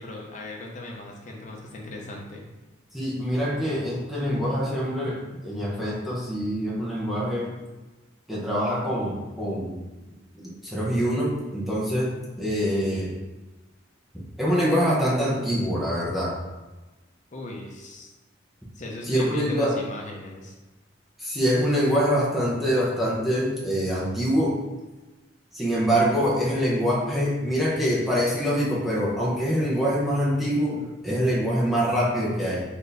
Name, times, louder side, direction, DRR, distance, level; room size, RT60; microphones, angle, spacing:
voice 1, 0.0-2.4 17.3-18.1 18.7-20.6, left 1 dB, 40° left, 0 dB, 0.7 m, -37 dB
voice 2, 2.9-5.2 5.4-7.6 8.3-9.8 10.6-12.1 12.4-13.1 14.4-16.3 19.1-19.7 21.2-24.5 25.5-32.6, equal, ahead, -8 dB, 0.8 m, -24 dB
4.2 x 2.7 x 3.3 m, 1.2 s
head